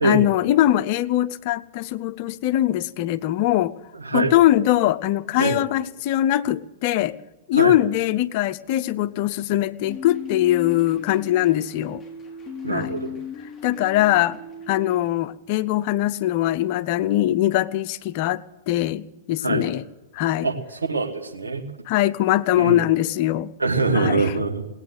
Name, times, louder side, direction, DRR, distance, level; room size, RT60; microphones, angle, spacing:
voice 1, 0.0-3.8 4.1-7.2 7.5-12.0 12.7-12.9 13.6-14.4 14.7-19.8 20.1-20.5 21.9-23.5 23.9-24.3, left 14 dB, 45° left, 0.6 m, -22 dB
sound 1, 9.9-15.1, left 5 dB, 25° left, 5.3 m, -37 dB
voice 2, 12.6-13.1 19.4-19.6 20.4-20.6 20.9-21.6 22.6-22.9 23.6-24.6, right 3 dB, 80° right, 2.1 m, -23 dB
19.5 x 8.9 x 8.1 m
figure-of-eight pair, 105°, 0 cm